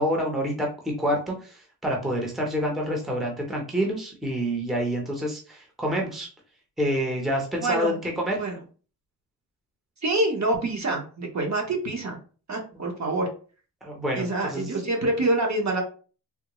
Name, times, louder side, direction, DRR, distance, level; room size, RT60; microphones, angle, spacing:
voice 1, 0.0-6.3 6.8-8.4 12.7-12.8 13.8-14.7, equal, ahead, -1 dB, 0.7 m, -28 dB
voice 2, 7.6-7.9 8.4-8.6 10.0-12.2 12.5-13.3 14.1-15.8, right 2 dB, 40° right, 1 dB, 0.9 m, -26 dB
3.5 x 2.1 x 3.0 m, 0.38 s
wide cardioid pair, 120°, 43 cm